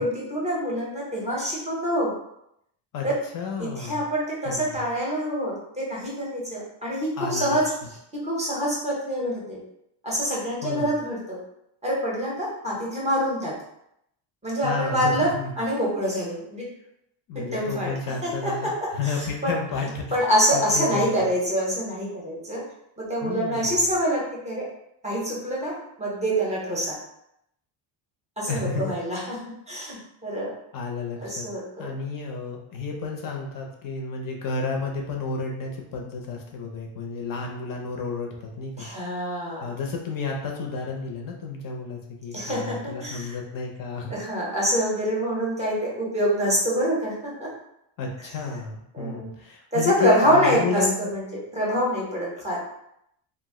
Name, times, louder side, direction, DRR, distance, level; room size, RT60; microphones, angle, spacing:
voice 1, 0.0-2.1 3.0-3.2 3.6-9.6 10.0-11.4 11.8-13.6 14.4-16.7 17.3-17.9 18.2-19.5 20.1-22.6 23.0-24.7 25.0-27.0 28.4-29.4 29.7-30.5 31.2-31.9 38.8-39.7 42.3-43.4 44.1-47.5 48.2-48.3 48.9-49.3 49.7-52.6, equal, 15° right, -5 dB, 0.6 m, -26 dB
voice 2, 3.3-4.0 4.5-4.9 7.2-7.6 10.6-10.9 14.6-15.6 17.3-20.0 20.5-21.2 23.2-23.7 28.5-28.9 30.7-31.5 31.8-38.9 39.6-44.1 48.0-51.1, left 4 dB, 45° left, 1 dB, 0.6 m, -31 dB
2.5 x 2.0 x 3.6 m, 0.78 s
cardioid pair, 155°, 50 cm